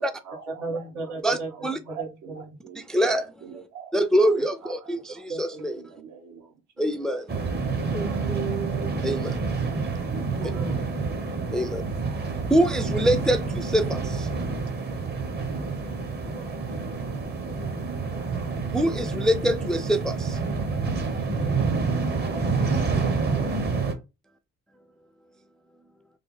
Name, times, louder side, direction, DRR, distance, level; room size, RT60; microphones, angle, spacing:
voice 1, 0.0-3.9 4.3-5.2 5.7-6.9 7.7-7.9 18.0-18.3, right 8 dB, 70° right, 1.1 m, -46 dB
voice 2, 0.6-1.5 1.8-2.4 5.3-5.7 7.8-9.3 10.1-10.8 15.6-16.0 16.2-16.4 18.3-18.4, right 4 dB, 85° right, 1.5 m, -35 dB
voice 3, 2.8-3.3 3.9-5.8 6.8-7.3 9.0-9.5 11.5-11.8 12.5-14.3 18.7-20.4, equal, ahead, 0.3 m, -24 dB
sound 1, 7.3-23.9, right 4 dB, 35° right, 0.8 m, -28 dB
3.4 x 2.2 x 3.8 m
cardioid pair, 90°, 30 cm